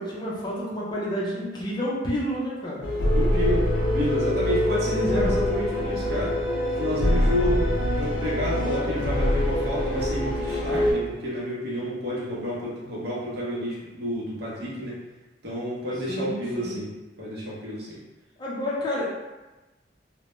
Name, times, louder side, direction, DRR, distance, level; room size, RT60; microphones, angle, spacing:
voice 1, 0.0-2.9 4.9-5.4 16.1-16.8 18.4-19.0, equal, 25° left, -5 dB, 0.5 m, -30 dB
sound 1, 2.8-10.9, left 1 dB, 90° left, 0.5 m, -24 dB
voice 2, 3.1-3.7 3.9-6.4 6.7-7.7 8.0-15.0 15.4-16.9 17.2-18.0, equal, 60° right, -6 dB, 0.7 m, -29 dB
2.1 x 2.1 x 2.9 m, 1.1 s
head